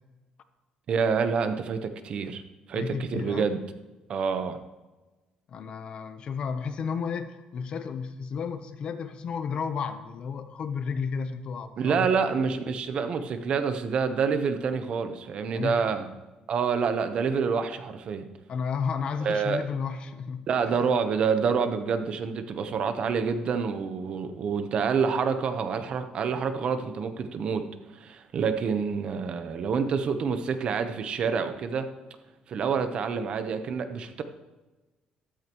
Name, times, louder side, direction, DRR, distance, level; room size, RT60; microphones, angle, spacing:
voice 1, 0.9-2.4 2.7-3.6 4.1-4.6 11.8-16.1 16.5-18.3 19.2-19.6 20.5-27.7 28.0-31.9 32.5-34.2, right 6 dB, 45° right, 9 dB, 0.9 m, -27 dB
voice 2, 2.7-3.5 5.5-12.2 15.5-15.8 18.5-20.9, left 6 dB, 45° left, 10 dB, 0.9 m, -33 dB
13.5 x 12.5 x 3.1 m, 1.2 s
cardioid pair, 150°, 2 cm